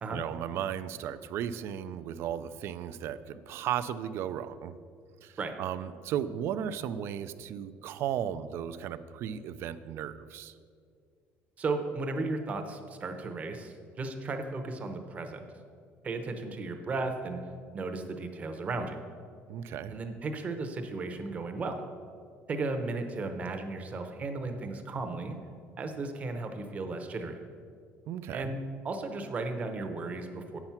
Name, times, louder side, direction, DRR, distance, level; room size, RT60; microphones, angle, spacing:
voice 1, 0.1-4.7 5.2-10.5 19.5-20.0 28.1-28.5, right 9 dB, 60° right, 13 dB, 0.4 m, -35 dB
voice 2, 11.6-15.4 16.0-17.4 17.7-19.0 19.9-21.9 22.5-25.4 25.8-27.4 28.3-30.6, right 3 dB, 30° right, 6 dB, 0.8 m, -35 dB
8.8 x 6.0 x 5.7 m, 2.2 s
cardioid pair, 145°, 5 cm